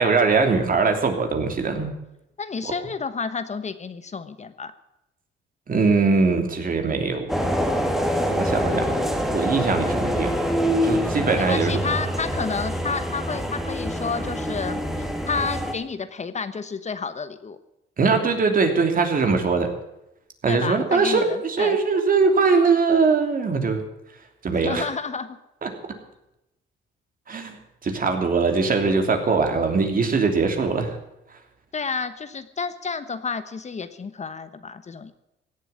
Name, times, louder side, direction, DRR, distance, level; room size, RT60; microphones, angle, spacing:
voice 1, 0.0-1.9 2.6-2.7 5.7-7.3 8.3-8.8 9.3-10.3 10.8-11.8 18.0-19.7 20.4-23.8 24.4-24.9 25.6-25.7 27.3-27.6 27.8-31.0, right 4 dB, 45° right, 5 dB, 3.1 m, -21 dB
voice 2, 2.4-4.7 11.4-17.6 20.5-21.8 24.5-25.4 31.7-35.1, left 5 dB, 35° left, 11 dB, 1.1 m, -30 dB
sound 1, 7.3-15.7, equal, ahead, 2.4 m, -25 dB
16.5 x 8.2 x 9.5 m, 0.88 s
cardioid pair, 90°, 20 cm